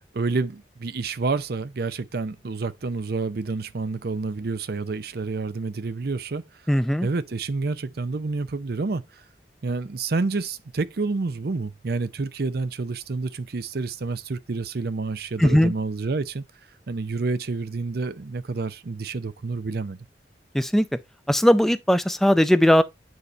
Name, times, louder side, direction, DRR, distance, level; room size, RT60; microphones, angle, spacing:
voice 1, 0.1-6.5 7.0-9.2 9.6-16.4 16.9-20.0, right 3 dB, 55° right, 0.6 m, -29 dB
voice 2, 6.7-7.1 15.4-15.7 20.5-20.9 21.3-22.8, equal, ahead, 0.4 m, -18 dB
9.3 x 4.1 x 3.1 m
head